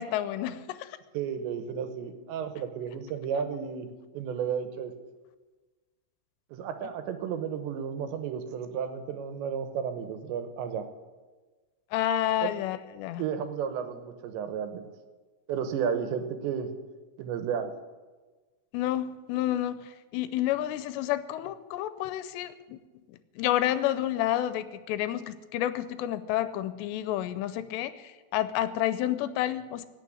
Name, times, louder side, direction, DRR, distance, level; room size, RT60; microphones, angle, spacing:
voice 1, 0.0-1.0 11.9-13.2 18.7-22.8 23.1-29.9, left 12 dB, 80° left, 13 dB, 2.8 m, -30 dB
voice 2, 1.1-3.9 4.1-4.9 6.5-10.9 12.4-12.5 13.2-14.9 15.5-16.7 17.2-17.7, right 7 dB, 80° right, 9 dB, 3.3 m, -33 dB
17.0 x 6.8 x 9.3 m, 1.3 s
omnidirectional pair, 5.0 m